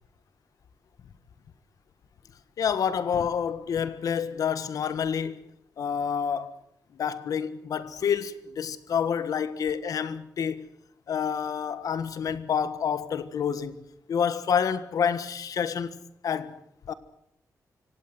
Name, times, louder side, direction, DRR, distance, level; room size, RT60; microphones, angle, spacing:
voice 1, 2.6-5.4 5.8-6.5 7.0-10.7 11.1-13.7 14.1-15.9 16.2-16.6 16.9-17.0, left 7 dB, 65° left, 1.5 m, -28 dB
25.5 x 17.5 x 7.8 m
wide cardioid pair, 175°, 7 cm